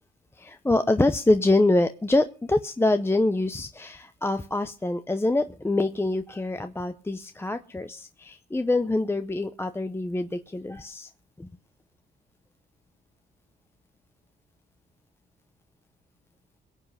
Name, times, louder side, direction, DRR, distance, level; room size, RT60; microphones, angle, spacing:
voice 1, 0.4-11.1 11.4-11.5, left 2 dB, 10° left, 10 dB, 0.8 m, -25 dB
22.5 x 8.0 x 5.7 m, 0.38 s
cardioid pair, 90°, 20 cm